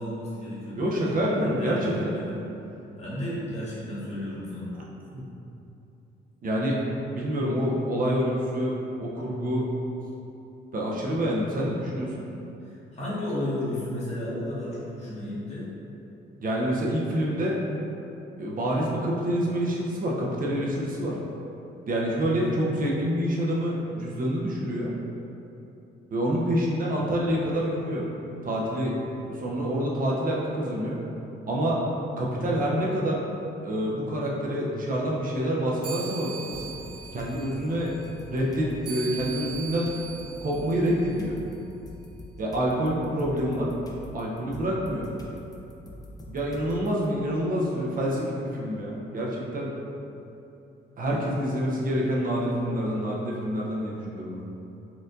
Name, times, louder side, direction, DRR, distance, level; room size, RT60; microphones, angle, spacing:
voice 1, 0.0-2.4 3.0-4.7 12.6-15.7 22.4-22.5, left 1 dB, 35° left, -9 dB, 1.2 m, -33 dB
voice 2, 0.8-2.1 5.1-5.2 6.4-6.8 7.1-8.7 9.0-9.7 10.7-12.2 16.4-17.6 18.4-21.2 21.9-24.9 26.1-28.0 28.4-29.0 29.2-31.0 31.5-31.8 32.2-33.2 33.6-36.8 37.1-37.9 38.3-39.9 40.4-41.4 42.4-43.7 44.1-45.1 46.3-49.7 51.0-54.4, equal, 45° right, -4 dB, 0.5 m, -27 dB
sound 1, 35.8-41.6, right 6 dB, 60° right, 1.2 m, -41 dB
sound 2, 36.5-37.4 37.9-47.1, left 1 dB, 20° left, 0.5 m, -45 dB
4.4 x 2.5 x 2.5 m, 2.9 s
cardioid pair, 90°, 20 cm